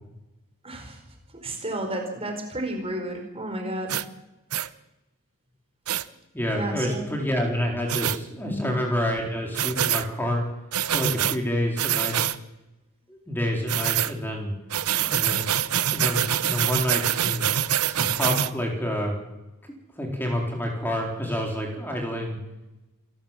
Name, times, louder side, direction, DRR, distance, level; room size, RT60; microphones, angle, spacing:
voice 1, 0.6-1.0 1.3-4.0 6.5-7.1 8.4-8.6, right 1 dB, 25° right, 3 dB, 4.7 m, -32 dB
sound 1, 3.9-4.1 4.5-4.7 5.9-6.0 7.9-8.2 9.5-10.1 10.7-11.4 11.8-12.4 13.7-14.1 14.7-18.5, right 10 dB, 80° right, 0.9 m, -25 dB
voice 2, 6.3-10.4 10.9-12.3 13.1-14.5 15.1-15.5 15.9-17.5 17.9-19.1 20.0-22.4, equal, 10° left, 0 dB, 4.2 m, -28 dB
28.0 x 13.5 x 7.4 m, 1.0 s
head